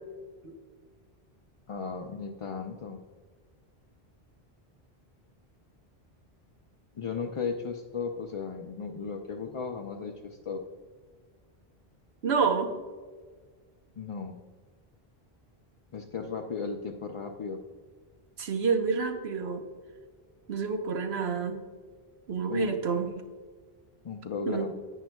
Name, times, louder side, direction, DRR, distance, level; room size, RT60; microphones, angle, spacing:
voice 1, 1.7-3.0 6.9-10.6 14.0-14.4 15.9-17.6 22.5-22.8 24.0-24.7, left 5 dB, 45° left, 2 dB, 0.4 m, -35 dB
voice 2, 12.2-12.7 18.4-19.6 20.5-21.6 22.3-23.1 24.5-24.7, right 5 dB, 80° right, 5 dB, 1.2 m, -28 dB
10.5 x 9.0 x 2.2 m, 1.5 s
omnidirectional pair, 1.1 m